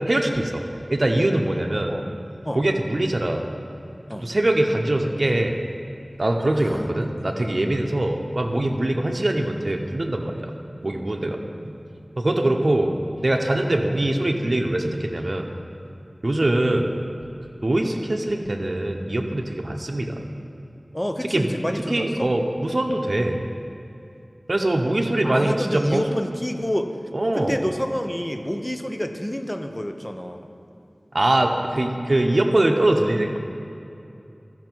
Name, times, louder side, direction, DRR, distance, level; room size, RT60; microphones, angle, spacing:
voice 1, 0.1-0.6 0.9-1.9 2.5-3.4 4.2-5.6 6.2-10.5 10.8-11.4 11.6-11.8 12.2-12.9 13.2-15.5 16.2-16.9 17.6-20.2 21.3-21.5 21.9-23.4 24.5-26.0 27.1-27.6 31.1-33.4, right 1 dB, 60° right, 2 dB, 0.8 m, -22 dB
voice 2, 6.5-7.0 7.3-7.7 20.9-22.3 25.2-26.9 27.3-30.5, equal, 15° left, 6 dB, 0.7 m, -29 dB
14.5 x 6.0 x 4.5 m, 2.8 s
wide cardioid pair, 40°, 0 cm